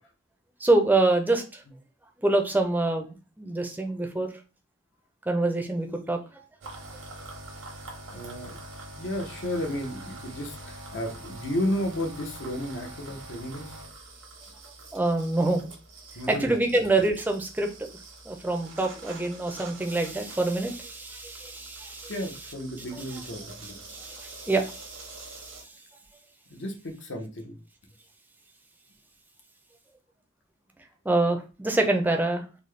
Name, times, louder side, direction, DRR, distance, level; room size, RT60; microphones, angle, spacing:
voice 1, 0.6-1.6 2.2-4.3 5.3-6.4 14.9-15.6 16.3-18.0 18.3-22.1 23.9-25.6 31.0-32.4, right 2 dB, 10° right, 4 dB, 0.5 m, -26 dB
sound 1, 6.6-25.6, right 2 dB, 90° right, 1.1 m, -45 dB
voice 2, 8.1-8.6 8.9-13.8 16.1-16.9 22.1-23.8 26.5-27.6, left 1 dB, 65° left, 3 dB, 0.9 m, -33 dB
4.0 x 2.2 x 3.2 m, 0.33 s
head